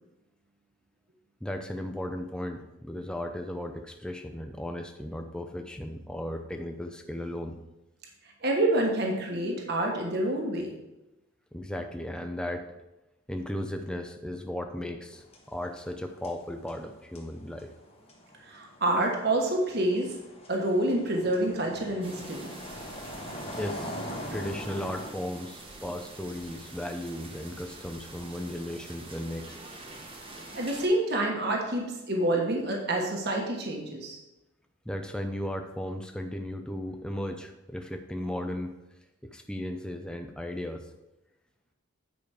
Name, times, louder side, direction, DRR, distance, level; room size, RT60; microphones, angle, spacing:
voice 1, 1.4-7.6 11.5-12.7 13.3-17.7 23.6-29.6 34.9-38.8 39.2-40.9, left 1 dB, 5° left, 5 dB, 0.6 m, -36 dB
voice 2, 8.4-10.8 18.5-20.2 20.5-22.5 30.5-34.2, right 1 dB, 50° right, 0 dB, 1.3 m, -27 dB
sound 1, 15.1-25.1, equal, 30° left, 1.3 m, -42 dB
sound 2, 22.0-30.9, right 2 dB, 25° right, 1.1 m, -46 dB
9.4 x 5.1 x 4.9 m, 0.96 s
head